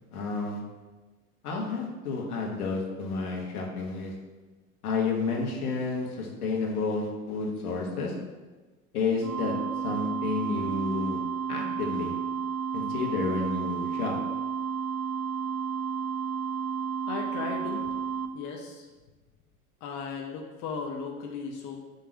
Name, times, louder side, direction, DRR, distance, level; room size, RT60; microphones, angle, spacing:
voice 1, 0.1-0.6 1.4-4.1 4.8-8.1 8.9-9.5 9.8-11.2 11.5-12.1 12.7-14.2, left 4 dB, 70° left, -1 dB, 1.5 m, -30 dB
sound 1, 9.2-18.3, right 6 dB, 75° right, 0.6 m, -32 dB
voice 2, 17.1-17.8 18.3-18.9 19.8-21.8, left 5 dB, 40° left, 1 dB, 0.8 m, -36 dB
6.6 x 3.1 x 5.9 m, 1.3 s
figure-of-eight pair, 80°, 46 cm